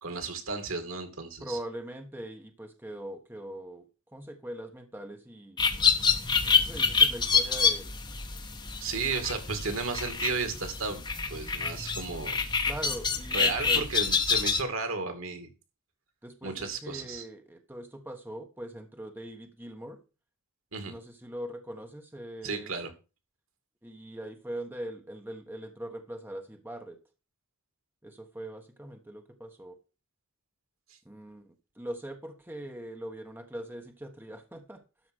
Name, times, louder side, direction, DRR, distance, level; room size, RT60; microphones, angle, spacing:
voice 1, 0.0-1.6 8.8-12.4 13.3-15.5 16.4-17.2 20.7-20.9 22.4-22.9, right 4 dB, 75° right, 7 dB, 2.4 m, -34 dB
voice 2, 1.4-5.7 6.4-7.9 12.6-13.9 16.2-20.0 20.8-22.7 23.8-27.0 28.0-29.8 31.0-34.8, right 1 dB, 10° right, 4 dB, 1.3 m, -41 dB
sound 1, 5.6-14.6, left 5 dB, 20° left, 1.1 m, -27 dB
13.0 x 5.0 x 6.3 m, 0.32 s
head